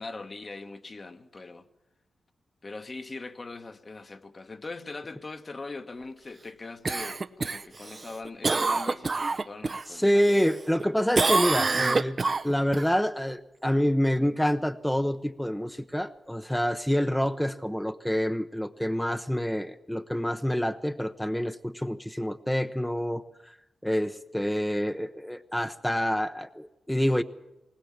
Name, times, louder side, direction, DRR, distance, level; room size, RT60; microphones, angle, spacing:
voice 1, 0.0-1.7 2.6-10.5, left 3 dB, 40° left, 1.2 m, -41 dB
Cough, 6.8-9.8 10.2-10.8 11.1-12.8 17.3-17.4, right 3 dB, 45° right, 0.8 m, -27 dB
voice 2, 9.9-12.2 12.4-23.5 23.8-27.2, equal, 5° left, 0.8 m, -27 dB
20.5 x 18.5 x 7.3 m
cardioid pair, 55°, 0 cm